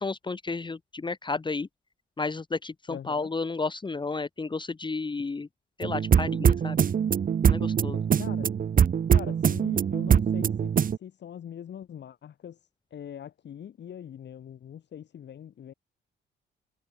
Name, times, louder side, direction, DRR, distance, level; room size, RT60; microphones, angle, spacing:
voice 1, 0.0-1.7 2.2-5.5 5.8-6.8 7.4-8.0, left 3 dB, 25° left, 1.6 m, -32 dB
voice 2, 2.9-3.3 8.2-8.5 9.1-10.7 11.0-12.6 12.9-15.7, left 9 dB, 60° left, 5.5 m, -42 dB
sound 1, 5.8-11.0, right 7 dB, 45° right, 1.1 m, -23 dB
cardioid pair, 90°, 20 cm